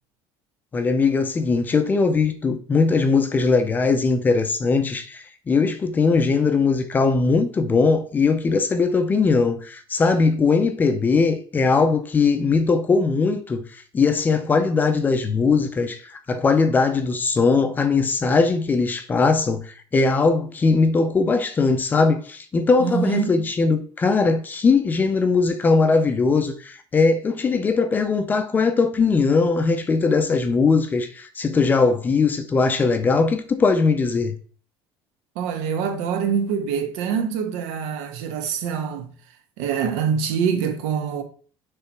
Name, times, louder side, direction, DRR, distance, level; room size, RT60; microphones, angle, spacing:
voice 1, 0.7-34.4, left 4 dB, 15° left, 0.5 m, -20 dB
voice 2, 22.8-23.3 35.3-39.1 39.6-41.2, right 7 dB, 85° right, 1.2 m, -25 dB
6.6 x 3.3 x 4.6 m
cardioid pair, 180°, 11 cm